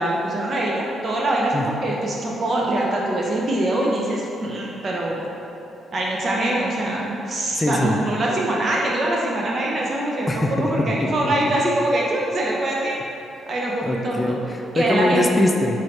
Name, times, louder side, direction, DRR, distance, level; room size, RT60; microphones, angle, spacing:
voice 1, 0.0-5.2 5.9-13.0 13.5-14.4 14.7-15.2, right 1 dB, 45° right, -3 dB, 0.6 m, -23 dB
voice 2, 7.5-8.0 10.3-10.7 11.0-11.3 13.8-15.8, left 1 dB, 15° left, 2 dB, 0.3 m, -22 dB
5.5 x 2.6 x 3.2 m, 2.9 s
cardioid pair, 90°, 0 cm